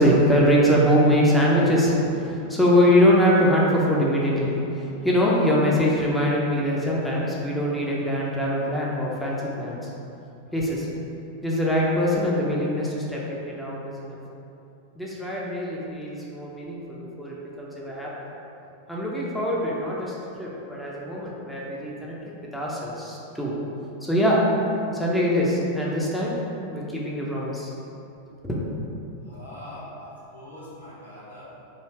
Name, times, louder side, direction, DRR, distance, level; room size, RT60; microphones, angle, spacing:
voice 1, 0.0-9.9 10.5-10.9 11.4-14.2 15.0-18.1 18.9-23.5 24.0-24.4 24.9-26.4 26.7-27.7 28.4-28.5, equal, 5° left, -6 dB, 0.6 m, -23 dB
voice 2, 29.2-31.4, left 1 dB, 85° left, -10 dB, 1.2 m, -42 dB
3.3 x 2.7 x 4.3 m, 2.8 s
figure-of-eight pair, 90°, 0 cm